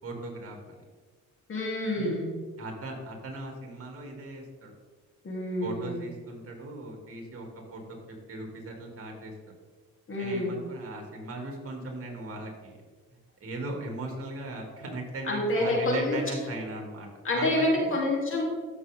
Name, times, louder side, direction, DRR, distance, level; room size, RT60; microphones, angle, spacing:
voice 1, 0.0-0.8 1.9-2.2 2.6-4.7 5.6-7.8 8.1-9.3 10.2-12.8 13.4-17.1 17.3-18.0, right 2 dB, 50° right, 1 dB, 3.0 m, -38 dB
voice 2, 1.5-2.3 5.2-6.0 10.1-10.6 15.2-16.2 17.2-18.4, left 1 dB, 45° left, -3 dB, 3.3 m, -27 dB
14.5 x 6.4 x 3.7 m, 1.5 s
cardioid pair, 90°, 30 cm